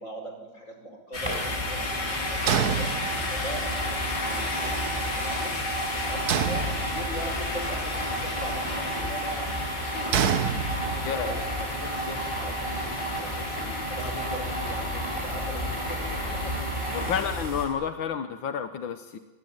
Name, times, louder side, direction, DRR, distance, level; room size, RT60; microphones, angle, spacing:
voice 1, 0.0-2.9 3.3-5.6 5.9-9.5 9.8-10.2 10.8-13.6 13.9-16.7 16.9-17.2, right 1 dB, 40° left, 4 dB, 5.9 m, -40 dB
sound 1, 1.1-17.4, left 3 dB, 65° left, 3.6 m, -36 dB
sound 2, 1.1-17.7, equal, 15° right, 6.7 m, -31 dB
sound 3, 2.5-3.6 6.3-7.3 10.1-11.2, right 8 dB, 60° right, 1.5 m, -27 dB
voice 2, 11.0-11.4 16.9-19.2, left 7 dB, 85° left, 9 dB, 1.9 m, -30 dB
25.5 x 21.0 x 9.6 m, 1.2 s
omnidirectional pair, 2.1 m